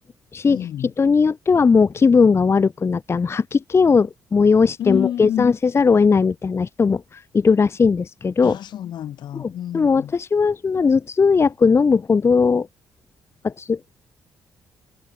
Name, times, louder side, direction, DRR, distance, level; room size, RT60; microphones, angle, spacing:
voice 1, 0.4-0.9 4.8-5.5 8.4-10.1, left 11 dB, 75° left, 2.6 m, -28 dB
voice 2, 1.0-8.6 9.3-12.7 13.4-14.0, left 5 dB, 35° left, 0.7 m, -18 dB
cardioid pair, 75°, 8 cm